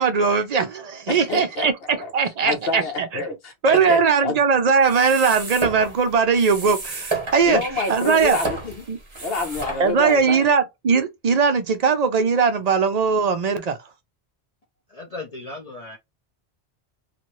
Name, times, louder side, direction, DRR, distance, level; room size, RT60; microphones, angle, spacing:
voice 1, 0.0-3.1 3.6-7.6 7.9-8.4 8.9-9.0 9.8-13.8, right 5 dB, 55° right, 0.5 m, -20 dB
voice 2, 1.1-1.7 2.0-2.1 2.4-4.4 7.4-8.9 9.2-10.5, left 3 dB, 65° left, 1.1 m, -28 dB
ball pump, 4.8-10.2, right 3 dB, 30° right, 0.8 m, -32 dB
voice 3, 14.9-16.0, left 2 dB, 45° left, 0.6 m, -36 dB
2.6 x 2.5 x 3.0 m
omnidirectional pair, 1.1 m